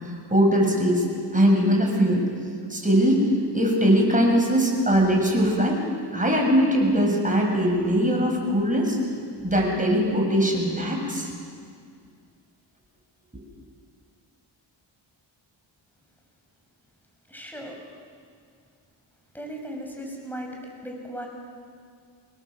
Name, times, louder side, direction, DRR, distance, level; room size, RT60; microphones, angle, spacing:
voice 1, 0.3-1.0 1.3-2.2 2.7-3.2 3.5-5.8 6.1-9.0 9.4-11.3, equal, 15° right, 0 dB, 7.4 m, -21 dB
voice 2, 17.3-17.8 19.3-20.5 20.8-21.3, right 1 dB, 5° left, 1 dB, 6.5 m, -36 dB
26.0 x 20.0 x 7.6 m, 2.2 s
cardioid pair, 60°, 48 cm